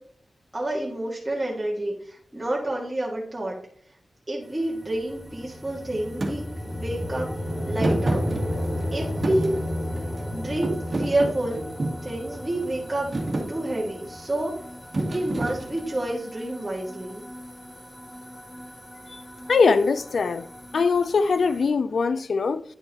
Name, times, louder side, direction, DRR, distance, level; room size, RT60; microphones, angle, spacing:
voice 1, 0.5-3.6 4.3-7.3 7.7-8.2 8.9-9.5 10.3-11.6 12.0-13.1 13.5-14.5 15.0-17.2, right 1 dB, 15° right, 1.9 m, -29 dB
sound 1, 4.4-21.7, equal, 10° left, 0.9 m, -44 dB
sound 2, 4.7-15.0, left 1 dB, 45° left, 3.6 m, -32 dB
Thump thud, 6.2-6.4 7.8-8.9 9.2-10.2 10.6-12.1 12.6-12.9 13.1-13.5 14.9-16.0, right 2 dB, 45° right, 1.6 m, -28 dB
voice 2, 19.5-20.5 20.7-22.6, left 4 dB, 70° left, 0.4 m, -22 dB
9.9 x 4.4 x 4.2 m
wide cardioid pair, 115°, 0 cm